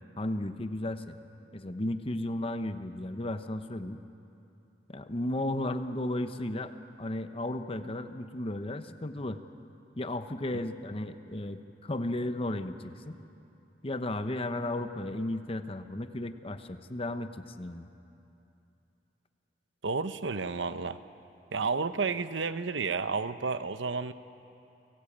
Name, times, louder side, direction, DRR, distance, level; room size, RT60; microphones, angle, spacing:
voice 1, 0.2-1.2 1.5-4.0 4.9-6.7 7.0-9.4 10.0-13.2 13.8-17.9, left 1 dB, 30° left, 9 dB, 1.0 m, -34 dB
voice 2, 19.8-21.0 21.5-24.1, right 4 dB, 90° right, 12 dB, 0.9 m, -31 dB
29.5 x 17.5 x 8.8 m, 2.8 s
head